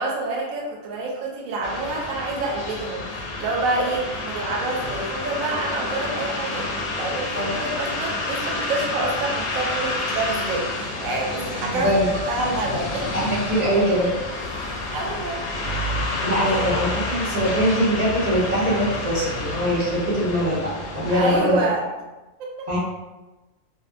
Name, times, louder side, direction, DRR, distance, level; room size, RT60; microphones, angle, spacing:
voice 1, 0.0-6.7 6.9-13.0 14.9-15.4 15.9-16.7 21.1-21.8 22.4-22.8, right 2 dB, 80° right, -2 dB, 1.0 m, -27 dB
sound 1, 1.6-21.4, left 2 dB, 65° left, 0.7 m, -29 dB
voice 2, 11.6-12.1 13.1-14.1 16.2-21.6 22.7-22.8, equal, 50° right, -8 dB, 0.5 m, -22 dB
2.6 x 2.3 x 2.5 m, 1.1 s
omnidirectional pair, 1.4 m